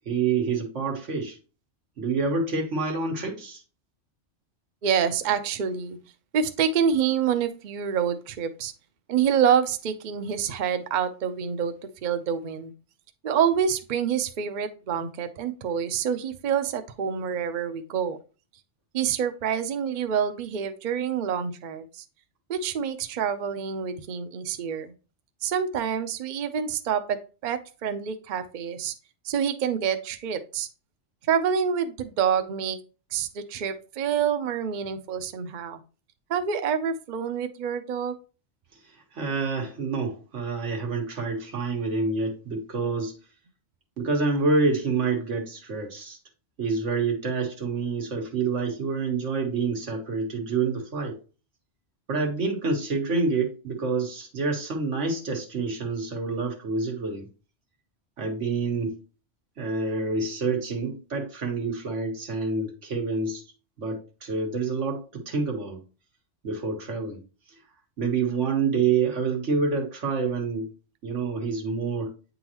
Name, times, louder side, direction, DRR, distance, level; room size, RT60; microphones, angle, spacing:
voice 1, 0.1-1.4 2.0-3.6 39.1-43.1 44.0-46.2 46.6-51.2 52.1-57.3 58.2-59.0 59.6-63.4 63.8-65.8 66.4-67.2 68.0-70.7 71.0-72.1, right 4 dB, 85° right, 1.7 m, -27 dB
voice 2, 4.8-6.0 6.3-8.7 9.1-11.7 12.0-12.7 13.2-18.2 18.9-22.0 22.5-24.9 25.4-27.0 27.4-28.9 29.2-30.7 31.3-32.8 33.1-35.8 36.3-38.2, right 7 dB, 50° right, 0.6 m, -27 dB
8.6 x 3.9 x 2.9 m
omnidirectional pair, 1.2 m